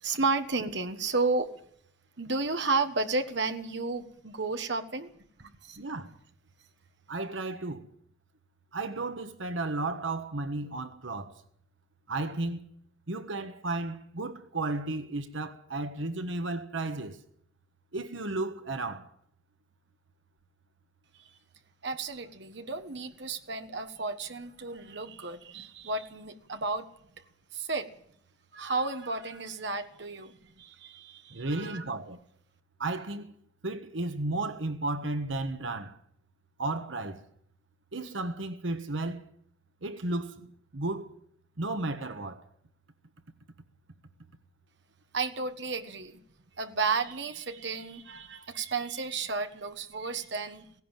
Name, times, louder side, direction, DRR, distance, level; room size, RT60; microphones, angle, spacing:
voice 1, 0.0-1.5 2.2-5.1 5.4-5.8 21.2-21.3 21.8-26.9 27.5-27.9 28.5-31.8 45.1-46.2 46.6-50.8, right 3 dB, 60° right, 1.4 m, -32 dB
voice 2, 5.8-6.2 7.1-7.9 8.7-11.4 12.1-12.6 13.1-17.2 17.9-19.1 31.3-32.2 32.8-33.3 33.6-36.0 36.6-37.2 37.9-39.2 39.8-41.2 41.6-42.4, right 2 dB, 75° right, 1.4 m, -33 dB
17.0 x 16.5 x 9.1 m
head